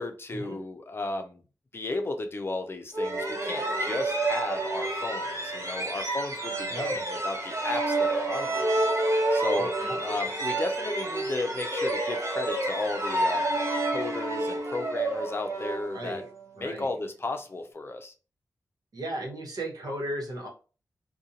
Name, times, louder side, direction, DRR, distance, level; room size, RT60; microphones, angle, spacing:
voice 1, 0.0-1.4 1.7-8.7 9.3-9.7 10.0-13.6 13.8-16.2 16.6-18.1, left 2 dB, 40° left, 5 dB, 0.5 m, -34 dB
sound 1, 2.9-16.4, right 2 dB, 55° right, 0.7 m, -29 dB
voice 2, 6.7-7.0 9.5-10.0 15.9-16.3 16.6-16.9 18.9-20.5, right 1 dB, 80° right, -1 dB, 1.0 m, -36 dB
2.5 x 2.2 x 2.8 m, 0.34 s
wide cardioid pair, 90°, 6 cm